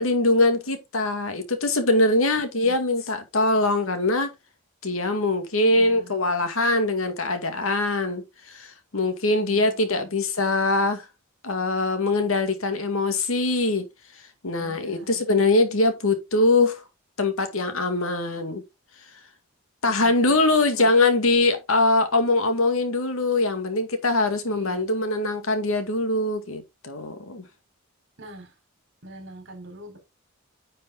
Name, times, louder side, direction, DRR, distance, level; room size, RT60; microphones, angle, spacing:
voice 1, 0.0-4.3 4.8-11.0 11.4-13.9 14.4-16.8 17.2-18.6 19.8-27.4, left 2 dB, 80° left, 2.1 m, -22 dB
voice 2, 2.3-2.8 5.6-6.1 9.4-10.1 14.6-15.2 19.8-20.9 24.5-24.9 28.2-28.6 29.0-30.0, equal, 60° right, 3.9 m, -45 dB
9.6 x 5.5 x 3.7 m
head